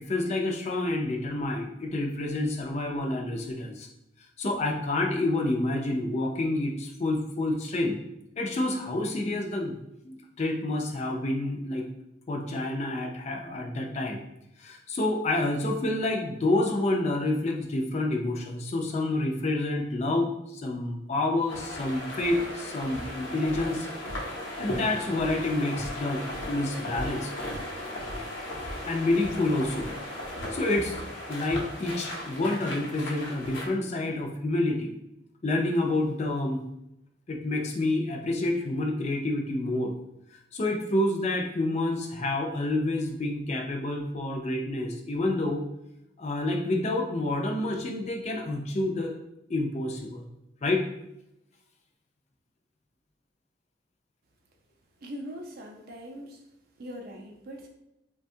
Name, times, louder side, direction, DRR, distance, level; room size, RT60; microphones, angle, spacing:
voice 1, 0.0-3.9 4.4-8.0 8.4-9.8 10.0-11.9 12.3-14.2 14.6-23.9 24.6-27.3 28.8-29.9 30.5-31.0 31.3-34.9 35.4-36.6 37.3-39.9 40.3-45.6 46.2-49.1 49.5-50.3 50.6-50.9, left 2 dB, 35° left, 2 dB, 0.4 m, -28 dB
sound 1, 21.5-33.7, left 1 dB, 80° left, 0.7 m, -36 dB
voice 2, 55.0-56.5 56.8-57.7, equal, 55° right, 1 dB, 0.5 m, -41 dB
3.4 x 2.2 x 2.6 m, 0.86 s
head